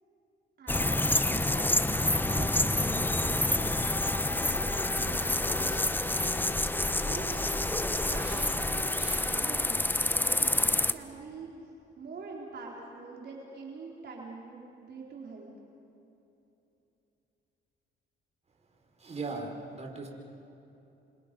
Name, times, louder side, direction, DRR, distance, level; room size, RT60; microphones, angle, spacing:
voice 1, 0.6-6.7 7.0-7.5 7.9-11.5 12.0-15.5, right 4 dB, 55° right, -2 dB, 3.9 m, -45 dB
sound 1, 0.7-10.9, left 2 dB, 10° left, 0.9 m, -28 dB
sound 2, 2.2-9.6, right 1 dB, 10° right, 5.9 m, -48 dB
voice 2, 19.0-20.1, right 3 dB, 35° right, 1 dB, 5.0 m, -38 dB
28.5 x 26.5 x 5.3 m, 2.9 s
cardioid pair, 90°, 20 cm